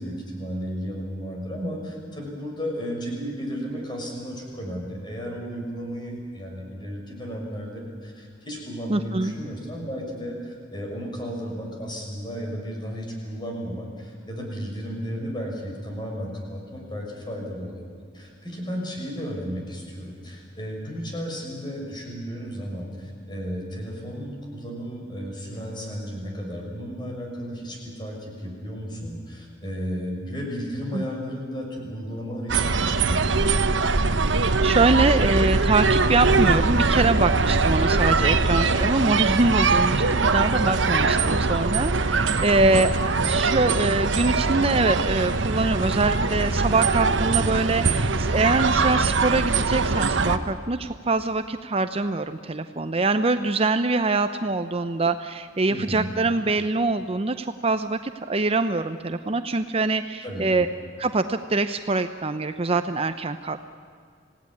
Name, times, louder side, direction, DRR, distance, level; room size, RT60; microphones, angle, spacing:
voice 1, 0.0-17.9 18.1-33.5 42.5-42.9 55.7-56.1 60.2-60.7, equal, 25° left, 0 dB, 6.0 m, -34 dB
voice 2, 8.9-9.3 30.9-31.0 34.3-60.7 61.0-63.6, right 3 dB, 30° right, 10 dB, 0.7 m, -24 dB
sound 1, 32.5-50.4, right 3 dB, 80° right, 1.1 m, -22 dB
26.5 x 17.0 x 9.8 m, 2.1 s
head